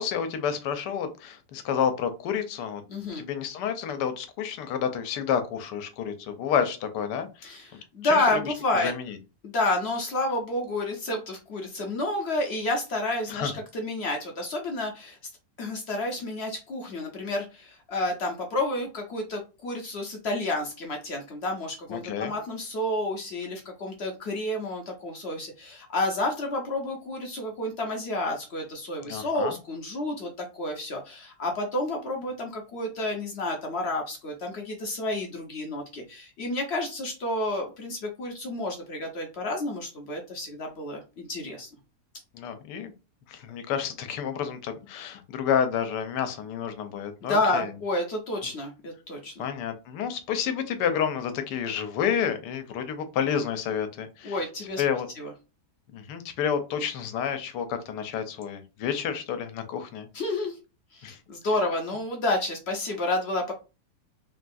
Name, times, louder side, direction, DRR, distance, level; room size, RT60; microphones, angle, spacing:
voice 1, 0.0-2.8 3.2-7.6 8.0-9.2 13.3-13.5 21.9-22.3 29.1-29.6 42.3-42.9 43.3-47.7 49.4-54.4 54.8-55.1 55.9-60.1 61.0-61.2, left 8 dB, 85° left, 8 dB, 1.2 m, -30 dB
voice 2, 2.9-3.2 7.4-8.9 9.4-15.2 15.6-41.7 47.2-49.5 54.2-55.3 60.1-60.6 60.9-63.5, left 2 dB, 60° left, 2 dB, 0.7 m, -30 dB
3.4 x 2.3 x 2.5 m, 0.30 s
omnidirectional pair, 1.8 m